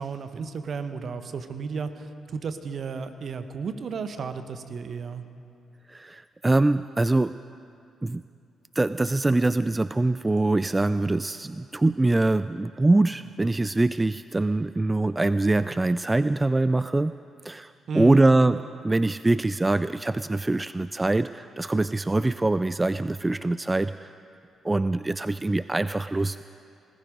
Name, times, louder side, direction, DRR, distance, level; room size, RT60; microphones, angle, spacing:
voice 1, 0.0-5.2 17.9-18.2, right 5 dB, 60° right, 9 dB, 1.0 m, -33 dB
voice 2, 5.9-7.3 8.0-8.2 8.8-17.1 17.4-24.1 24.6-26.4, right 2 dB, 20° right, 14 dB, 0.3 m, -23 dB
19.0 x 14.0 x 5.2 m, 2.5 s
hypercardioid pair, 45°, 0 cm